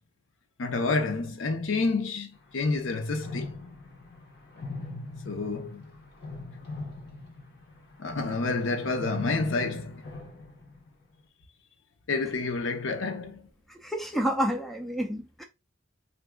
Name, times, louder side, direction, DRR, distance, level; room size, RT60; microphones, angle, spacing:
voice 1, 0.6-3.5 5.3-5.8 8.0-10.0 12.1-13.4, left 3 dB, 80° left, 0.6 m, -29 dB
sound 1, 2.3-2.5 2.8-11.0, left 3 dB, 55° left, 0.9 m, -41 dB
voice 2, 13.7-15.4, equal, ahead, 0.4 m, -29 dB
3.5 x 2.6 x 2.2 m
head